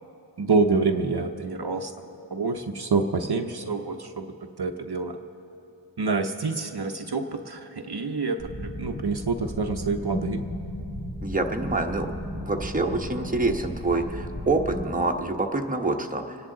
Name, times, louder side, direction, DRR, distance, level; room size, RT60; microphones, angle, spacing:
voice 1, 0.4-2.1 2.3-4.3 4.6-5.2 6.0-10.4, right 4 dB, 60° right, 5 dB, 0.7 m, -27 dB
sound 1, 8.4-14.9, equal, 50° left, 2.2 m, -35 dB
voice 2, 11.2-12.1 12.4-16.4, right 2 dB, 20° right, 2 dB, 0.9 m, -26 dB
28.5 x 10.0 x 3.8 m, 2.8 s
wide cardioid pair, 45°, 45 cm